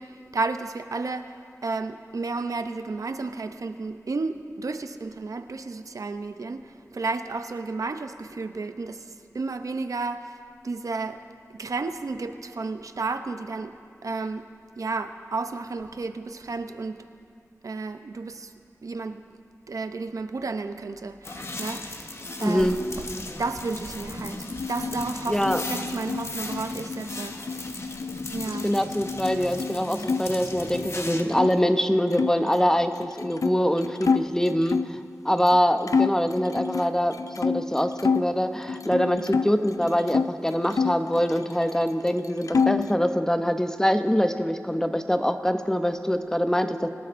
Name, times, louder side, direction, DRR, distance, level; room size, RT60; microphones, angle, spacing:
voice 1, 0.0-11.2 11.5-13.8 14.0-14.5 14.8-17.0 17.6-18.5 18.8-19.2 19.7-23.1 23.4-27.7 28.3-28.7, right 3 dB, 85° right, 8 dB, 0.6 m, -32 dB
sound 1, 21.2-31.2, left 2 dB, 50° left, 0.9 m, -37 dB
voice 2, 22.4-22.8 25.3-25.6 28.6-35.0 35.2-46.9, equal, 10° left, 8 dB, 0.6 m, -24 dB
sound 2, 24.5-30.2 30.5-31.5 32.1-35.0 35.5-35.6 35.9-38.3 38.7-40.3 40.7-41.8 42.1-43.0, left 5 dB, 80° left, 0.4 m, -28 dB
26.0 x 13.0 x 2.6 m, 2.4 s
wide cardioid pair, 70°, 6 cm